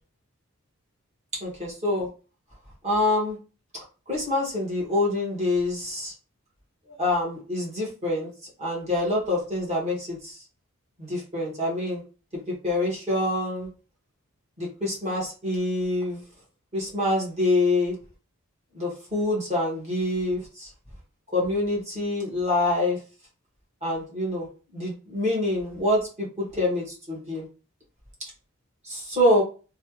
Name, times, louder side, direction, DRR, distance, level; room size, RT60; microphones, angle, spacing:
voice 1, 1.4-2.1 2.8-3.4 4.1-6.1 7.0-8.3 8.6-10.4 11.0-12.0 12.6-13.7 14.6-16.2 16.7-17.9 18.7-20.7 21.3-23.0 23.8-24.5 24.7-27.4 28.8-29.4, left 1 dB, 30° right, -4 dB, 1.4 m, -26 dB
3.2 x 2.4 x 2.9 m, 0.34 s
head